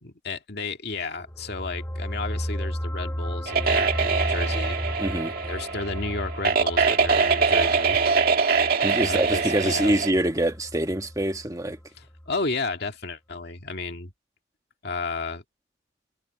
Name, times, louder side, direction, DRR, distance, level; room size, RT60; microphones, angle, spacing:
voice 1, 0.0-4.8 5.4-8.0 9.0-9.9 12.0-14.1 14.8-15.4, left 3 dB, 60° left, 2.1 m, -33 dB
sound 1, 1.2-11.8 12.1-12.3, equal, 10° left, 1.5 m, -34 dB
sound 2, 3.5-10.1, right 5 dB, 50° right, 2.1 m, -23 dB
voice 2, 5.0-5.3 8.8-11.8, right 1 dB, 20° right, 1.5 m, -25 dB
head